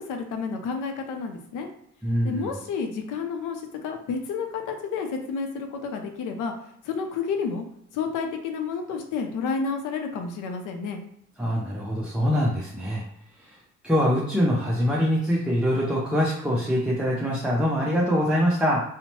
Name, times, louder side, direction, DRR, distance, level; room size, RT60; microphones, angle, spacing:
voice 1, 0.1-1.7 2.2-6.5 6.8-7.7 7.9-11.0, left 5 dB, 90° left, 5 dB, 0.5 m, -30 dB
voice 2, 2.0-2.5 11.4-13.0 13.4-13.6 13.8-18.8, equal, 5° right, -4 dB, 0.5 m, -24 dB
2.8 x 2.1 x 2.9 m, 0.72 s
cardioid pair, 90°, 30 cm